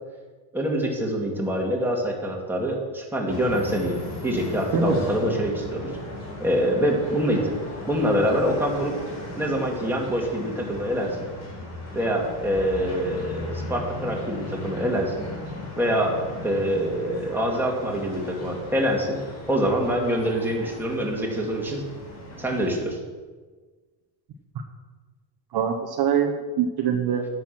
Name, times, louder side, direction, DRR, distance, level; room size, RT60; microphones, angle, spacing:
voice 1, 0.5-5.9 6.4-7.5 7.9-8.9 9.4-11.3 11.9-15.3 15.7-16.1 16.4-19.2 19.5-21.8 22.4-23.0, equal, 5° right, -2 dB, 2.3 m, -25 dB
sound 1, 3.3-22.8, left 2 dB, 30° left, 4.4 m, -37 dB
voice 2, 25.5-27.3, right 7 dB, 50° right, 3 dB, 1.2 m, -24 dB
10.5 x 8.2 x 6.0 m, 1.4 s
cardioid pair, 130°, 50 cm